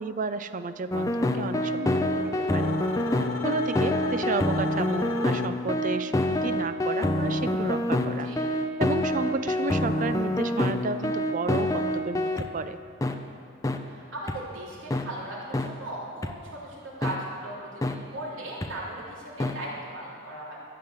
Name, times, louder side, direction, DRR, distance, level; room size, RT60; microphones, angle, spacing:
voice 1, 0.0-2.2 2.5-2.7 3.4-8.3 8.8-12.8, right 4 dB, 40° right, 11 dB, 0.5 m, -32 dB
sound 1, 0.9-12.5 13.0-13.1 13.6-13.8 14.3-14.4 14.9-15.0 15.5-15.7 16.2-16.3 17.0-17.2 17.8-17.9 18.6-18.7 19.4-19.5, left 1 dB, 15° left, 0.5 m, -26 dB
sound 2, 1.7-5.9, left 4 dB, 90° left, 0.7 m, -36 dB
voice 2, 13.9-20.6, right 1 dB, 75° right, -5 dB, 3.3 m, -38 dB
13.0 x 7.9 x 8.1 m, 2.4 s
head